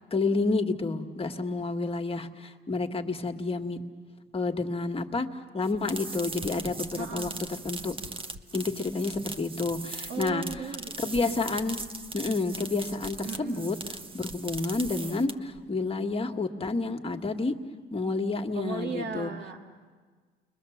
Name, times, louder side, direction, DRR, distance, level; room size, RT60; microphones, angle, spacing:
voice 1, 0.1-3.8 4.3-5.3 5.5-7.3 7.6-8.0 8.5-10.4 11.0-11.8 12.1-13.8 14.1-17.5 17.9-19.3, left 3 dB, 30° left, 5 dB, 1.7 m, -29 dB
sound 1, 5.6-15.6, right 3 dB, 25° right, 1.2 m, -39 dB
voice 2, 7.0-7.4 10.1-11.4 13.2-13.7 18.5-19.6, right 5 dB, 60° right, 3 dB, 2.3 m, -37 dB
29.5 x 22.5 x 7.2 m, 1.5 s
cardioid pair, 90°, 20 cm